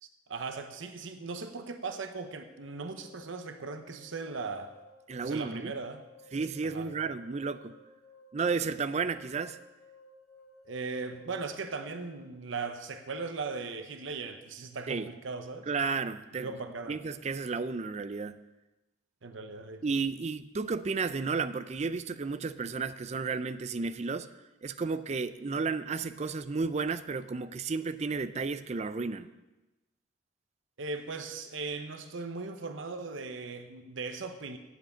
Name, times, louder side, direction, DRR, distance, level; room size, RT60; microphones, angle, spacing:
voice 1, 0.0-4.7 5.2-6.0 6.6-6.9 10.7-15.7 16.3-17.0 19.2-19.8 30.8-34.6, right 4 dB, 75° right, 7 dB, 0.8 m, -38 dB
sound 1, 2.3-12.1, left 1 dB, 50° left, 1.9 m, -57 dB
voice 2, 5.1-5.7 6.3-7.7 8.3-9.6 14.9-15.1 15.7-16.5 16.9-18.4 19.8-24.3 24.6-29.3, right 4 dB, 35° right, 12 dB, 0.4 m, -32 dB
8.3 x 7.3 x 8.6 m, 1.1 s
head